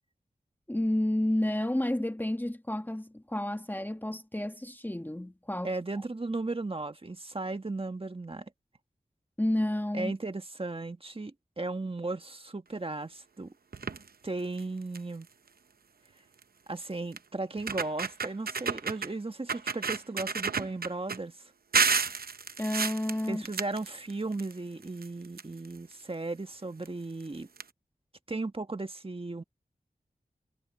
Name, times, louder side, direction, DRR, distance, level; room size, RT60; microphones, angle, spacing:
voice 1, 0.7-5.8 9.4-10.1 13.8-14.0 22.6-23.4, left 1 dB, 10° left, 1.3 m, -30 dB
voice 2, 5.6-8.4 9.9-13.5 14.2-15.3 16.7-21.3 23.3-27.5 28.3-29.4, right 2 dB, 35° right, 1.6 m, -36 dB
sound 1, 13.7-14.1 14.6-14.7 14.9-15.2 16.4-16.5 17.2-17.3 17.6-19.1 19.5-21.2 21.7-24.5 24.8-25.9 26.8-26.9 27.2-27.3 27.6-27.7, right 5 dB, 75° right, 0.8 m, -31 dB
wide cardioid pair, 65°, 16 cm